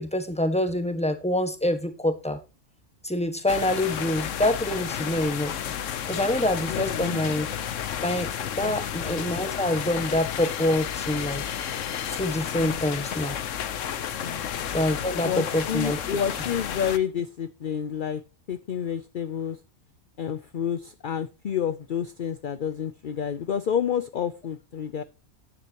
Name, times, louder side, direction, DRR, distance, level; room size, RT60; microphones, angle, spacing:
voice 1, 0.0-2.4 3.0-5.5 5.8-7.5 8.0-11.4 12.1-13.3 14.7-16.0, left 1 dB, 5° left, 8 dB, 1.5 m, -26 dB
sound 1, 3.5-17.0, left 9 dB, 80° left, 1.2 m, -32 dB
voice 2, 6.7-7.2 8.6-8.8 12.6-12.8 14.2-14.4 15.2-18.2 18.5-19.6 20.2-25.0, left 8 dB, 50° left, 13 dB, 0.7 m, -29 dB
13.0 x 10.0 x 3.0 m, 0.29 s
omnidirectional pair, 1.3 m